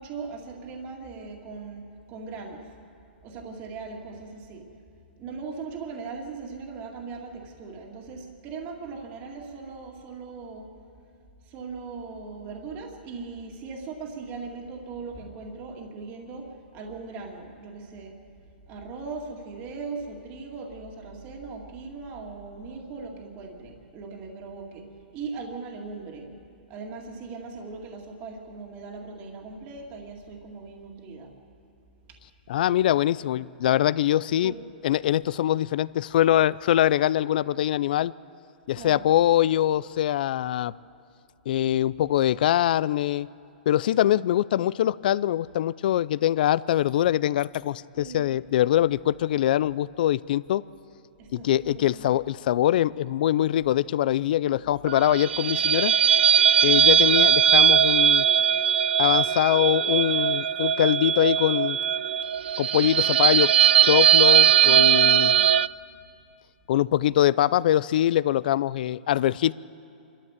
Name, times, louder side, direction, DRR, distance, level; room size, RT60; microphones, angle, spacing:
voice 1, 0.0-2.7 3.2-4.7 5.2-10.7 11.4-18.2 18.7-26.3 26.7-31.3 34.4-34.6 38.8-39.1 48.0-48.4 51.2-52.2 54.5-54.6 56.6-57.0 64.6-65.5, right 4 dB, 30° right, 1 dB, 2.2 m, -39 dB
voice 2, 32.5-34.5 34.8-38.1 38.7-40.7 41.5-43.3 43.7-50.6 51.3-55.9 56.6-58.3 59.0-61.8 62.6-63.5 63.8-65.4 66.7-69.5, left 12 dB, 55° left, 20 dB, 0.4 m, -23 dB
sound 1, 54.9-65.7, right 9 dB, 75° right, 0.4 m, -20 dB
27.0 x 13.0 x 7.4 m, 2.5 s
hypercardioid pair, 155°, 6 cm